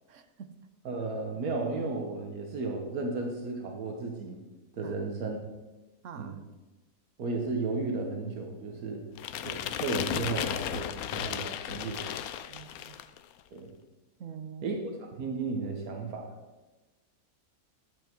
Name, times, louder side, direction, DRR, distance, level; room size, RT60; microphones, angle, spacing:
voice 1, 0.1-0.5 4.8-5.0 6.0-6.4 12.5-13.0 14.2-14.8, right 7 dB, 60° right, 10 dB, 1.1 m, -45 dB
voice 2, 0.8-4.4 4.7-5.4 6.2-6.4 7.2-9.0 9.4-12.0 13.5-13.7 14.6-14.8 15.1-16.3, right 3 dB, 90° right, 2 dB, 1.6 m, -34 dB
sound 1, 9.2-13.2, left 10 dB, 85° left, 1.1 m, -35 dB
11.5 x 7.6 x 4.5 m, 1.2 s
omnidirectional pair, 1.5 m